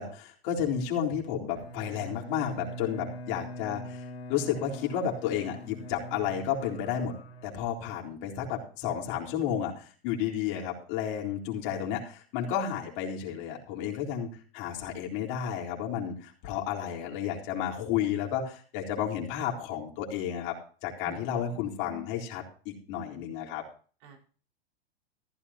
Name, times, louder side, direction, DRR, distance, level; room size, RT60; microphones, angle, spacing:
voice 1, 0.0-7.1 7.4-14.3 14.5-20.6 20.8-23.6, left 9 dB, 55° left, -1 dB, 4.0 m, -32 dB
Bowed string instrument, 1.5-8.1, right 2 dB, 80° left, 2.3 m, -43 dB
voice 2, 21.0-22.0 24.0-24.2, right 5 dB, 55° right, 2 dB, 4.9 m, -48 dB
15.0 x 14.0 x 2.9 m, 0.40 s
hypercardioid pair, 100°, 30 cm